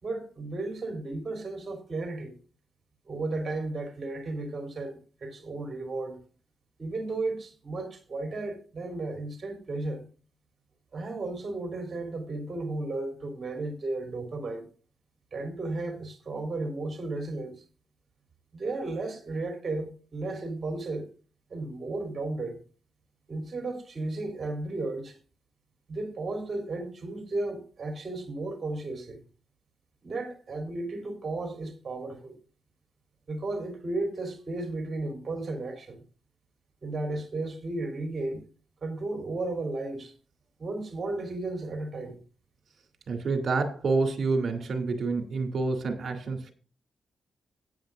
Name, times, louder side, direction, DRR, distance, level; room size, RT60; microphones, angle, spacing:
voice 1, 0.0-2.4 3.1-6.2 6.8-10.1 10.9-14.7 15.3-17.5 18.5-21.1 21.5-22.6 23.3-25.2 25.9-29.2 30.0-32.3 33.3-36.0 36.8-38.4 38.8-40.1 40.6-42.2, right 2 dB, 45° right, 3.3 m, -34 dB
voice 2, 43.1-46.5, right 3 dB, 60° right, 2.7 m, -28 dB
16.0 x 9.3 x 2.5 m
cardioid pair, 85°, 0 cm